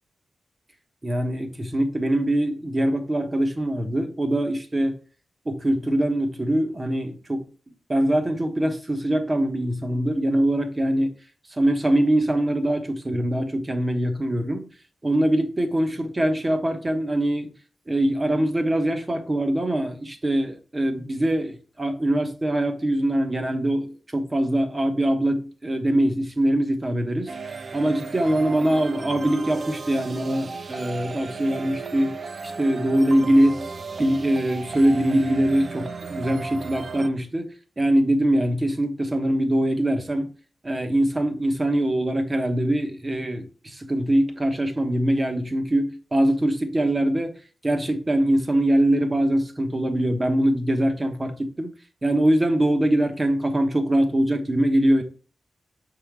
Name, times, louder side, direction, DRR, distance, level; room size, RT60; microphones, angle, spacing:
voice 1, 1.0-5.0 5.4-7.4 7.9-11.1 11.6-14.7 15.0-17.5 17.9-27.3 27.7-32.2 32.4-33.7 34.0-40.3 40.6-47.4 47.6-51.7 52.0-55.0, right 1 dB, 25° right, 1.2 m, -23 dB
sound 1, 27.3-37.1, right 4 dB, 50° right, 0.5 m, -35 dB
6.2 x 3.9 x 4.6 m
wide cardioid pair, 95°, 0 cm